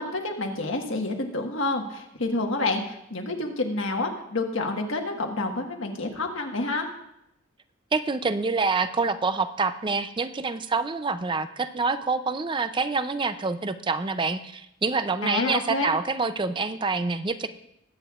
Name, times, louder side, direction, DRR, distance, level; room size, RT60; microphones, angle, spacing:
voice 1, 0.0-6.9 15.2-15.9, left 2 dB, 70° left, 2 dB, 1.5 m, -28 dB
voice 2, 7.9-17.5, right 4 dB, 25° right, 11 dB, 0.5 m, -26 dB
20.5 x 9.0 x 2.5 m, 0.79 s
head